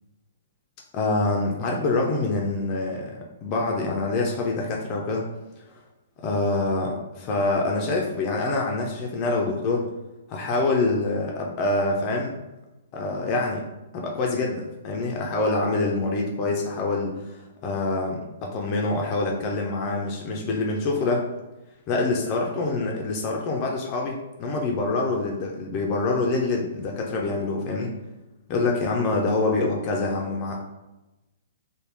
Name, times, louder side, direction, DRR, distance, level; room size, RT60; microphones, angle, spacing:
voice 1, 0.9-5.3 6.2-9.9 10.3-12.3 12.9-13.7 13.9-21.2 21.9-27.9 28.5-30.6, left 3 dB, 30° left, -1 dB, 0.5 m, -25 dB
3.4 x 2.1 x 3.3 m, 1.0 s
figure-of-eight pair, 115°, 0 cm